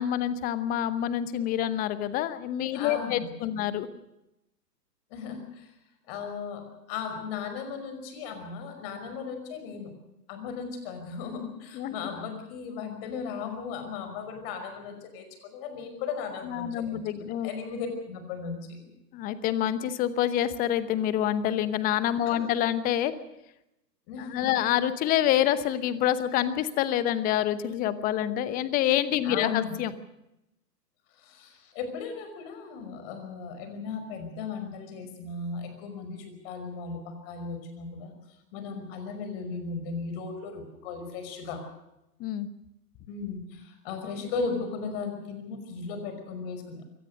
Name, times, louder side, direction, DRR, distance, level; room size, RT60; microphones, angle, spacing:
voice 1, 0.0-3.9 11.7-11.9 16.4-17.5 19.1-23.1 24.2-29.9 42.2-42.5, left 11 dB, 15° left, 14 dB, 0.9 m, -27 dB
voice 2, 2.7-3.6 5.1-5.7 6.1-9.9 10.3-18.9 22.3-22.5 24.1-24.7 29.2-29.7 31.2-38.1 38.5-41.6 43.1-46.8, left 5 dB, 35° left, 7 dB, 5.4 m, -36 dB
23.0 x 18.5 x 6.5 m, 0.89 s
figure-of-eight pair, 120°, 49 cm